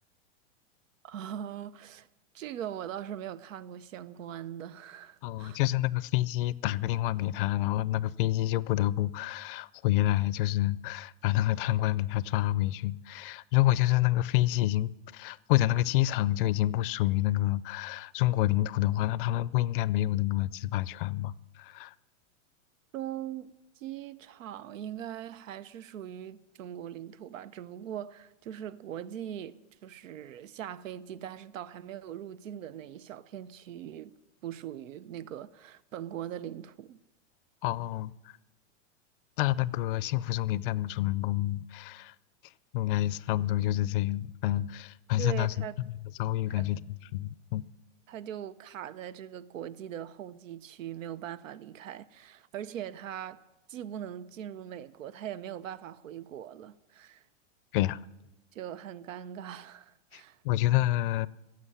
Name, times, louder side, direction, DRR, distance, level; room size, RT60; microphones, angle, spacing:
voice 1, 1.0-2.1 2.3-5.6 22.9-37.0 45.2-45.7 46.5-46.7 48.1-53.4 53.7-57.3 58.5-60.4, right 10 dB, 90° right, 0.8 m, -41 dB
voice 2, 5.2-21.9 37.6-38.1 39.4-42.1 42.7-45.5 46.2-46.8 47.1-47.7 57.7-58.0 60.1-61.3, left 15 dB, 45° left, 0.5 m, -28 dB
15.5 x 7.7 x 9.8 m
supercardioid pair, 150°, 38 cm